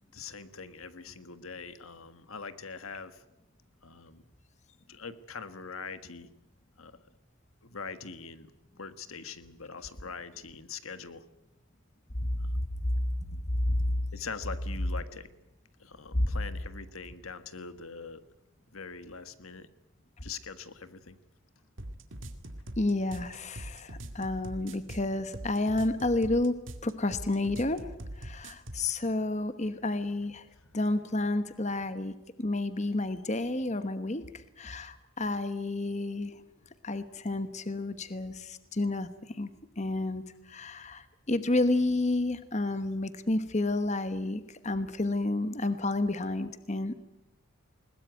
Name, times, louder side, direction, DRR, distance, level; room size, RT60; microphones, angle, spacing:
voice 1, 0.1-3.2 3.8-4.2 4.9-6.3 6.8-7.0 7.6-8.5 8.8-11.2 14.1-15.3 15.8-18.2 18.7-19.7 20.2-21.2, left 5 dB, 80° left, 11 dB, 1.5 m, -43 dB
voice 2, 13.6-14.0 16.1-16.3 22.8-26.5 26.8-30.5 30.7-36.4 36.8-39.5 39.8-46.9, left 2 dB, 35° left, 11 dB, 1.1 m, -30 dB
sound 1, 21.8-28.9, right 1 dB, 65° right, 2.2 m, -42 dB
21.0 x 20.5 x 9.3 m, 0.90 s
head